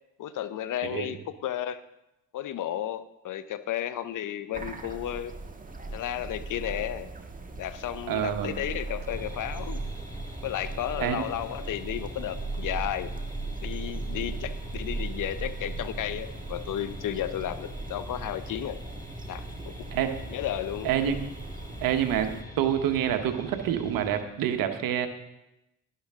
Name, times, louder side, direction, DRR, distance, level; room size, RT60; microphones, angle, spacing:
voice 1, 0.2-1.8 2.3-5.3 5.9-7.1 7.6-9.8 10.4-13.1 13.6-18.8 19.3-19.7 20.3-20.9, left 11 dB, 65° left, 13 dB, 0.8 m, -33 dB
sound 1, 4.5-22.4, right 3 dB, 25° right, 1.5 m, -38 dB
voice 2, 8.1-8.5 11.0-11.3 19.9-20.1 20.8-21.2 21.8-25.1, right 10 dB, 85° right, 7 dB, 1.2 m, -27 dB
sound 2, 9.1-24.2, left 1 dB, 10° left, 1.5 m, -44 dB
11.5 x 11.0 x 3.6 m, 0.88 s
supercardioid pair, 70°, 33 cm